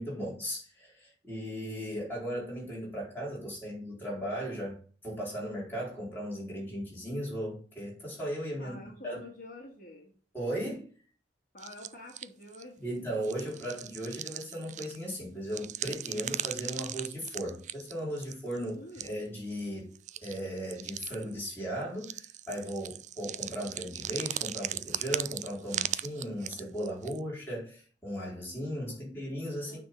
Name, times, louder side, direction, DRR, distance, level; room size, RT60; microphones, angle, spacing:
voice 1, 0.0-4.8 5.0-8.7 9.0-9.2 10.3-10.9 12.8-19.9 20.2-29.8, equal, 10° left, -5 dB, 4.3 m, -37 dB
voice 2, 8.6-10.1 11.5-13.0 18.6-19.1 26.4-26.7 28.9-29.0 29.7-29.8, left 2 dB, 50° left, -1 dB, 1.8 m, -48 dB
sound 1, 11.6-12.6 13.2-15.1 15.5-18.7 18.9-19.2 19.5-19.6 19.9-21.5 22.0-27.2, right 11 dB, 45° right, 0.4 m, -38 dB
9.2 x 3.7 x 6.9 m, 0.42 s
head